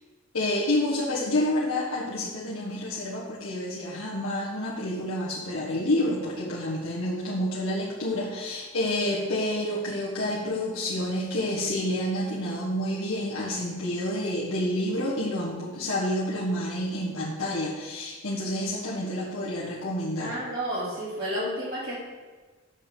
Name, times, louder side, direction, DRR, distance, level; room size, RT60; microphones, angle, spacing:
voice 1, 0.3-20.3, left 1 dB, 80° left, -6 dB, 1.5 m, -29 dB
voice 2, 20.2-22.0, equal, 45° right, -9 dB, 3.2 m, -31 dB
8.4 x 5.7 x 6.8 m, 1.3 s
head